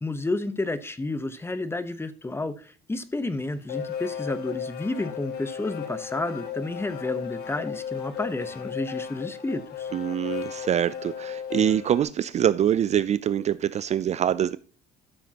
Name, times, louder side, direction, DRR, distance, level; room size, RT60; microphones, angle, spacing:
voice 1, 0.0-9.9, left 2 dB, 15° left, 0.9 m, -31 dB
sound 1, 3.1-12.0, left 8 dB, 70° left, 1.8 m, -35 dB
voice 2, 9.9-14.6, right 10 dB, 40° right, 0.4 m, -24 dB
13.0 x 7.0 x 2.9 m
cardioid pair, 110°, 17 cm